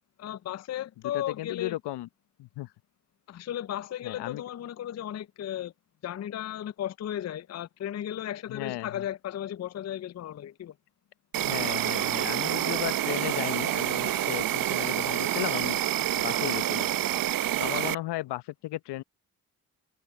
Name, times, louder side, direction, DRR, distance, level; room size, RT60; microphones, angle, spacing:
voice 1, 0.2-1.8 3.3-5.7 6.0-10.8, left 11 dB, 40° left, 0.6 m, -35 dB
voice 2, 1.1-2.1 2.4-2.7 4.0-4.4 8.5-9.0 11.4-15.8 16.2-16.9 17.6-19.0, left 16 dB, 70° left, 0.9 m, -35 dB
Insect, 11.3-17.9, right 12 dB, 55° right, 0.8 m, -28 dB
hypercardioid pair, 45°, 42 cm